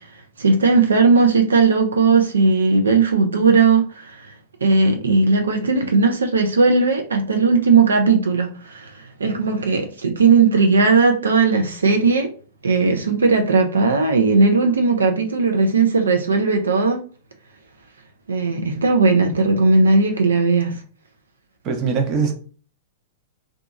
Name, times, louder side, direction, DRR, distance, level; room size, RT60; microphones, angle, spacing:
voice 1, 0.4-4.3 4.6-12.3 12.6-17.0 18.3-20.8, right 4 dB, 75° right, 0.5 m, -17 dB
voice 2, 21.6-22.3, right 5 dB, 35° right, 0.7 m, -21 dB
2.7 x 2.3 x 2.4 m
figure-of-eight pair, 100°, 0 cm